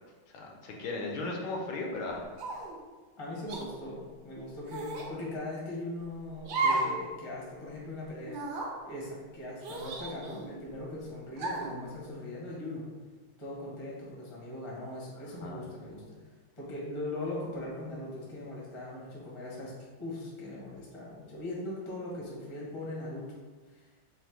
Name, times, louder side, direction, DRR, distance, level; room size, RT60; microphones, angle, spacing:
voice 1, 0.3-2.3 15.4-15.7, left 2 dB, 80° left, 0 dB, 1.4 m, -36 dB
sound 1, 2.4-2.8 3.5-3.7 4.7-5.1 6.4-7.0 7.3-7.4 8.3-8.7 9.6-10.5 11.4-11.8, right 3 dB, 70° right, 1.1 m, -33 dB
voice 2, 3.2-8.4 8.8-12.9 13.4-16.2 16.6-19.7 20.0-23.3 23.7-23.9, left 1 dB, 35° left, -5 dB, 0.5 m, -40 dB
3.9 x 2.1 x 4.4 m, 1.3 s
omnidirectional pair, 2.2 m